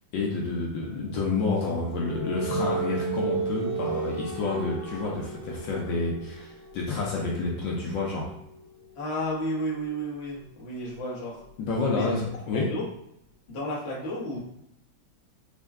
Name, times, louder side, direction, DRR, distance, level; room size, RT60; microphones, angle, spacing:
voice 1, 0.1-8.3 11.6-12.7, left 3 dB, 70° left, -2 dB, 1.3 m, -29 dB
sound 1, 1.0-12.5, right 5 dB, 75° right, 1.8 m, -36 dB
voice 2, 9.0-11.4 11.9-12.1 12.7-12.9 13.5-14.4, equal, 40° left, -5 dB, 1.0 m, -32 dB
4.3 x 2.2 x 3.5 m, 0.75 s
omnidirectional pair, 2.3 m